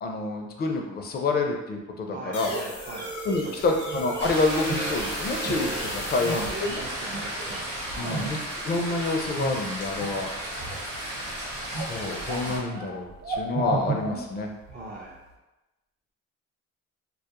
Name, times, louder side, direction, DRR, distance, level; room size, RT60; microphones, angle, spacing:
voice 1, 0.0-2.5 3.3-6.8 8.0-8.4 8.6-10.3 11.7-14.5, left 3 dB, 35° left, 2 dB, 0.4 m, -28 dB
voice 2, 2.1-3.1 3.4-3.8 6.3-8.3 14.7-15.2, right 2 dB, 35° right, -4 dB, 0.4 m, -41 dB
sound 1, 2.3-6.7, right 1 dB, 80° left, 0.8 m, -36 dB
sound 2, 2.4-9.0 9.3-10.2 10.5-11.2 11.5-14.9 15.1-15.2, right 1 dB, 60° right, 0.9 m, -34 dB
sound 3, 4.2-12.6, right 1 dB, 85° right, 0.9 m, -34 dB
2.3 x 2.0 x 2.8 m, 1.0 s
cardioid pair, 90°, 30 cm